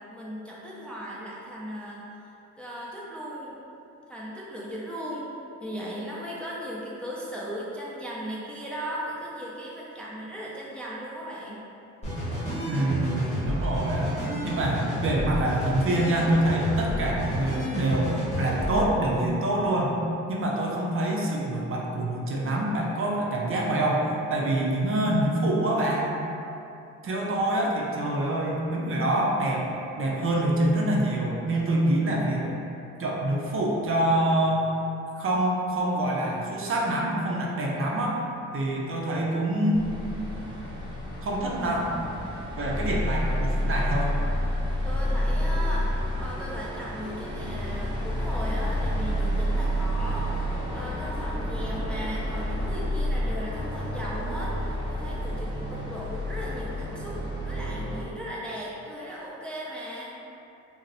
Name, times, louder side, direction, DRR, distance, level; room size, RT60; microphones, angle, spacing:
voice 1, 0.0-2.0 2.6-3.6 4.1-5.3 5.6-11.7 44.8-45.9 46.2-60.2, equal, 5° left, -6 dB, 0.4 m, -37 dB
sound 1, 12.0-18.9, equal, 20° left, 1.1 m, -30 dB
voice 2, 12.6-20.0 20.3-24.0 24.3-26.1 27.0-29.7 30.0-32.5 33.0-34.7 35.1-38.2 38.5-39.9 41.2-41.9 42.6-44.1, right 1 dB, 45° right, -2 dB, 0.5 m, -26 dB
sound 2, 39.7-58.0, equal, 15° right, 0.9 m, -29 dB
2.5 x 2.0 x 3.9 m, 2.8 s
cardioid pair, 90°, 30 cm